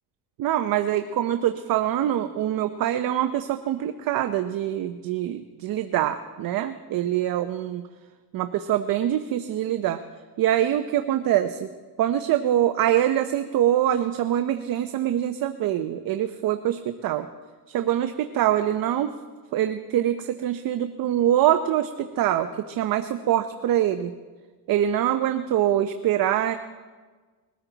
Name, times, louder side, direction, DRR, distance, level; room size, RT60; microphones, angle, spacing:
voice 1, 0.4-7.8 8.3-10.0 10.4-11.7 12.0-17.3 17.7-19.1 19.5-24.1 24.7-26.6, right 11 dB, 55° right, 9 dB, 0.7 m, -24 dB
21.0 x 14.0 x 4.0 m, 1.4 s
cardioid pair, 130°, 42 cm